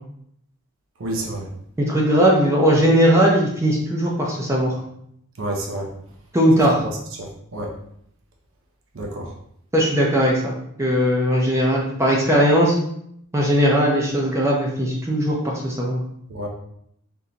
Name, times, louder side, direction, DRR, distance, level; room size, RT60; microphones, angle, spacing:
voice 1, 1.0-1.5 5.4-5.9 7.2-7.7 8.9-9.3 16.3-16.5, right 1 dB, 60° right, 0 dB, 0.6 m, -29 dB
voice 2, 1.8-4.8 6.3-6.8 9.7-12.8 13.3-16.0, equal, 15° right, -3 dB, 0.5 m, -19 dB
3.6 x 2.6 x 2.8 m, 0.71 s
head